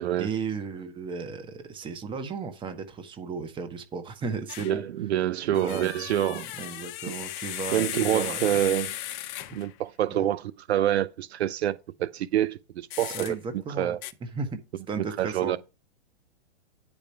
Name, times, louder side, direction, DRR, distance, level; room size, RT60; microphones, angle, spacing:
voice 1, 0.2-4.8 5.5-8.5 9.5-9.6 10.1-10.2 13.0-14.6 14.9-15.6, right 5 dB, 15° right, 1.2 m, -35 dB
sound 1, 4.5-4.8 5.5-9.7 12.9-13.3 14.0-14.1, left 14 dB, 20° left, 0.4 m, -36 dB
voice 2, 4.6-6.5 7.7-8.9 9.5-13.4 13.8-14.0 15.0-15.6, right 12 dB, 65° right, 0.7 m, -27 dB
10.0 x 5.3 x 4.5 m
hypercardioid pair, 135°, 35 cm